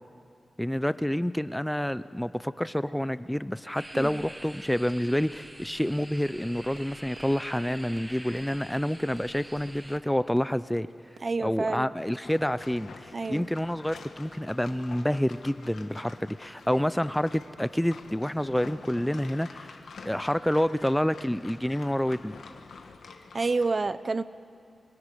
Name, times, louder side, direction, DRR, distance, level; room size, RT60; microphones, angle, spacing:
voice 1, 0.6-10.9 11.4-19.8 20.0-22.3, equal, 5° left, 15 dB, 0.5 m, -28 dB
sound 1, 3.8-10.0, right 1 dB, 15° right, 1.2 m, -45 dB
sound 2, 6.8-6.9 7.2-7.3 7.6-7.7 7.9-8.0 8.3-8.4 8.7-8.8 9.1-9.2 9.5-9.6 9.9-10.0 10.3-10.4 10.7-10.8 11.2-11.3 11.6-11.7, right 5 dB, 80° right, 1.9 m, -48 dB
voice 2, 11.2-11.9 13.1-13.5 23.3-24.2, right 3 dB, 40° right, 15 dB, 0.6 m, -29 dB
sound 3, 12.2-23.7, left 4 dB, 80° left, 1.5 m, -47 dB
23.5 x 17.5 x 10.0 m, 2.7 s
wide cardioid pair, 80°, 0 cm